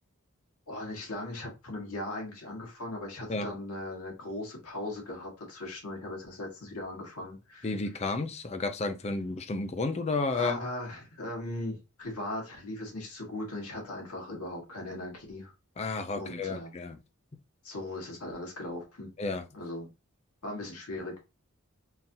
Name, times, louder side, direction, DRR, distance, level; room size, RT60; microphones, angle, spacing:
voice 1, 0.7-7.7 10.3-15.5 16.1-16.7 17.6-19.1 19.5-19.9 20.4-21.2, left 1 dB, 85° left, 1.7 m, -38 dB
voice 2, 7.6-10.6 15.8-17.0 19.2-19.4, left 3 dB, 30° left, 0.4 m, -31 dB
3.8 x 2.8 x 2.6 m
head